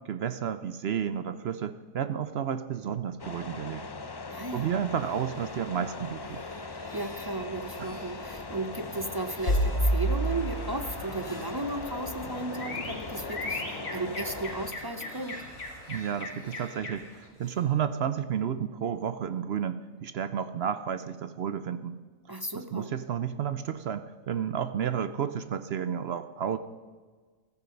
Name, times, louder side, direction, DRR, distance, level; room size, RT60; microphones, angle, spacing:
voice 1, 0.0-3.8 4.5-6.4 7.8-8.0 15.9-22.0 22.6-26.6, right 8 dB, 60° right, 11 dB, 0.7 m, -31 dB
sound 1, 3.2-14.7, left 3 dB, 35° left, 0.4 m, -40 dB
voice 2, 4.3-4.7 6.9-15.4 22.3-22.9, right 2 dB, 35° right, 8 dB, 0.3 m, -35 dB
sound 2, 4.8-17.6, right 1 dB, 55° left, 4.2 m, -35 dB
sound 3, 11.9-17.3, left 3 dB, 75° left, 2.6 m, -40 dB
15.0 x 13.5 x 5.3 m, 1.5 s
omnidirectional pair, 1.4 m